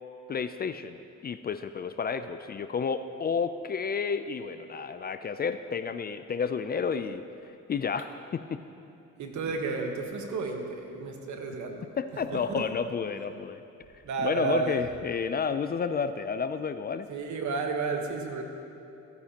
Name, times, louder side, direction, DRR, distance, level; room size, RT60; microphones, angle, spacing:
voice 1, 0.3-8.6 12.0-13.6 14.2-17.1, left 6 dB, 35° left, 11 dB, 0.4 m, -31 dB
voice 2, 9.2-11.8 12.3-12.6 14.0-14.8 17.1-18.4, right 4 dB, 70° right, 3 dB, 1.3 m, -32 dB
15.5 x 9.4 x 2.9 m, 2.9 s
cardioid pair, 90°, 30 cm